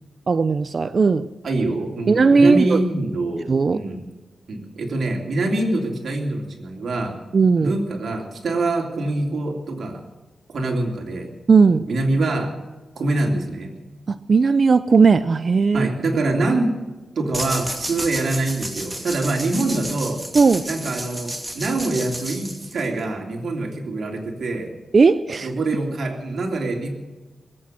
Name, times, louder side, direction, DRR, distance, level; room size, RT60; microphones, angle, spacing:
voice 1, 0.3-1.3 2.1-2.8 3.5-3.8 7.3-7.7 11.5-11.9 14.1-15.9 20.3-20.7 24.9-25.5, right 4 dB, 55° right, 13 dB, 0.5 m, -16 dB
voice 2, 1.4-4.0 4.5-7.2 7.6-10.0 10.5-11.3 11.9-12.6 12.9-13.7 15.7-16.7 17.1-20.2 20.6-24.7 25.4-26.9, right 2 dB, 70° right, 1 dB, 3.2 m, -24 dB
sound 1, 17.3-23.0, right 1 dB, 15° right, 2.6 m, -32 dB
21.0 x 8.6 x 7.7 m, 1.2 s
cardioid pair, 75°, 0 cm